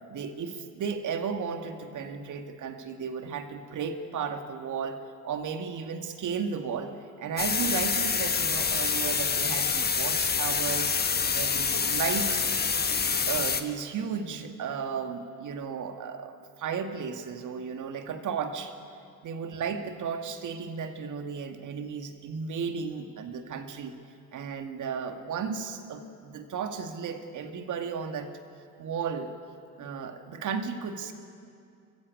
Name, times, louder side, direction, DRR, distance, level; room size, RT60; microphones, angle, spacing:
voice 1, 0.1-5.0 5.2-11.0 11.3-12.5 13.1-18.7 19.2-23.9 24.3-28.3 28.8-29.3 29.8-31.1, right 6 dB, 40° right, 6 dB, 2.1 m, -34 dB
sound 1, 7.4-13.6, left 5 dB, 20° left, 1.4 m, -27 dB
25.5 x 15.5 x 8.5 m, 2.4 s
figure-of-eight pair, 65°, 49 cm